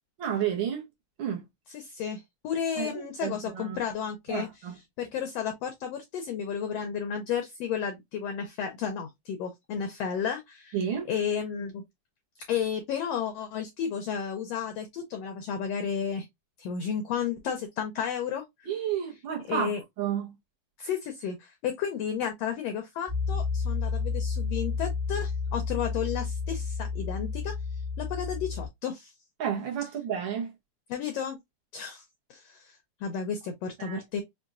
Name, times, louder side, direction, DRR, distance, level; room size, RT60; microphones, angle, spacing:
voice 1, 0.2-0.8 1.2-1.4 2.8-3.8 4.3-4.8 10.7-11.1 18.7-20.3 29.4-30.5 33.8-34.0, right 8 dB, 80° right, 1.1 m, -31 dB
voice 2, 1.7-4.5 5.0-10.8 11.1-11.8 12.5-16.3 16.6-18.7 19.5-19.8 20.8-27.5 28.0-29.1 30.9-31.4 31.7-32.0 32.3-34.2, left 7 dB, 85° left, 1.4 m, -32 dB
Piano, 23.1-28.7, left 5 dB, 25° right, 0.4 m, -31 dB
5.7 x 2.3 x 2.4 m
omnidirectional pair, 3.6 m